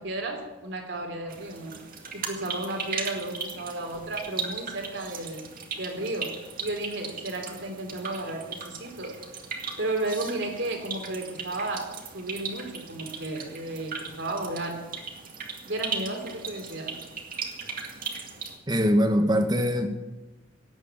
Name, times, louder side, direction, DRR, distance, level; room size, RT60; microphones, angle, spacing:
voice 1, 0.0-1.8 2.1-5.5 5.8-9.2 9.8-14.8 15.6-16.9, right 2 dB, 60° right, 3 dB, 3.3 m, -33 dB
sound 1, 1.3-18.6, right 5 dB, 45° right, 2.1 m, -38 dB
voice 2, 18.7-19.9, equal, 20° right, 6 dB, 1.5 m, -22 dB
17.5 x 8.3 x 8.9 m, 1.1 s
head